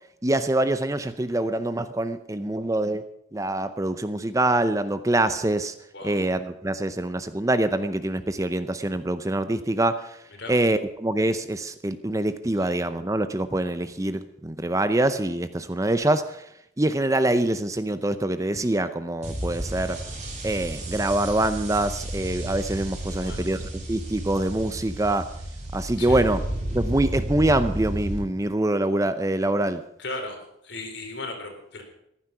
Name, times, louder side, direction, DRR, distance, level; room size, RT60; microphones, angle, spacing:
voice 1, 0.2-3.0 3.3-5.7 6.0-10.2 10.5-16.4 16.8-20.0 20.4-25.3 25.7-26.4 26.7-29.8, right 1 dB, 15° right, 11 dB, 0.6 m, -25 dB
sound 1, 19.2-28.2, right 1 dB, 35° right, 3.2 m, -32 dB
voice 2, 23.1-23.4 26.0-26.2 30.0-30.4 30.6-31.8, left 2 dB, 65° left, 3 dB, 3.8 m, -36 dB
14.5 x 11.5 x 5.7 m, 0.77 s
head